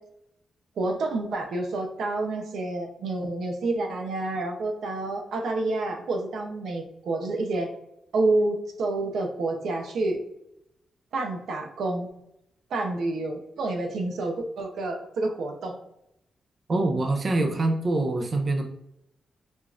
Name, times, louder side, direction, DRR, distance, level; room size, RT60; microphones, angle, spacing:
voice 1, 0.8-7.7 8.1-10.2 11.1-12.1 12.7-15.8, right 2 dB, 85° right, 3 dB, 0.6 m, -28 dB
voice 2, 16.7-18.6, right 2 dB, 40° right, 4 dB, 0.5 m, -24 dB
5.0 x 2.4 x 2.4 m, 0.81 s
wide cardioid pair, 135°, 0 cm